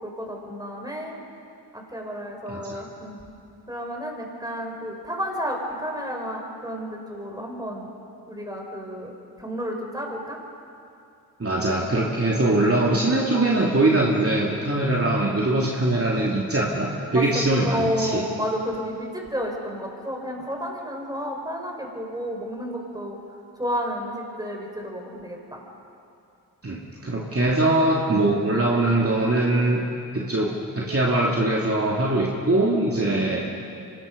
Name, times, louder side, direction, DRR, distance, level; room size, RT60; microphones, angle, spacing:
voice 1, 0.0-1.2 1.7-3.2 3.7-7.9 8.3-9.1 9.4-10.4 17.1-23.2 23.6-25.6 27.1-27.8 33.0-33.3, equal, 10° right, 1 dB, 5.2 m, -31 dB
voice 2, 2.5-2.8 11.4-18.2 26.6-29.8 30.1-33.5, right 2 dB, 35° right, -3 dB, 2.9 m, -22 dB
25.0 x 19.5 x 5.4 m, 2.6 s
cardioid pair, 45°, 39 cm